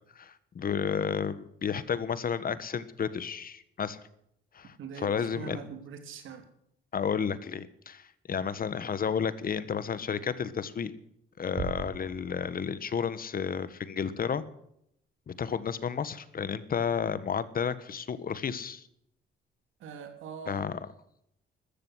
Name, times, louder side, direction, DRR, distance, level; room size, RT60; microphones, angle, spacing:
voice 1, 0.1-4.0 4.5-5.6 6.9-10.9 11.4-14.4 15.3-18.9 20.5-20.7, left 7 dB, 45° left, 15 dB, 1.4 m, -32 dB
voice 2, 4.8-6.5 19.8-20.6, right 6 dB, 80° right, 7 dB, 3.3 m, -42 dB
sound 1, 11.6-13.0, right 6 dB, 60° right, 5.0 m, -39 dB
14.0 x 13.5 x 6.4 m, 0.73 s
cardioid pair, 90°, 20 cm